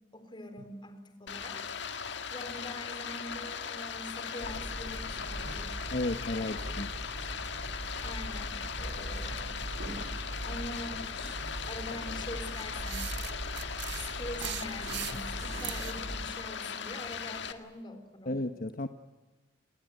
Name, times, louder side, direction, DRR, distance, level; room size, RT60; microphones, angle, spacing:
voice 1, 0.1-1.6 2.3-5.9 6.4-6.8 8.0-9.6 10.4-11.4 11.7-13.2 14.0-18.4, left 1 dB, 25° left, 8 dB, 3.8 m, -44 dB
Stream, 1.3-17.5, left 6 dB, 65° left, 1.8 m, -39 dB
sound 1, 4.4-16.2, right 1 dB, 80° right, 4.6 m, -41 dB
voice 2, 5.9-6.9 18.3-18.9, left 2 dB, 50° left, 8 dB, 1.1 m, -33 dB
sound 2, 12.6-16.0, right 13 dB, 65° right, 0.8 m, -40 dB
27.0 x 20.5 x 9.2 m, 1.2 s
head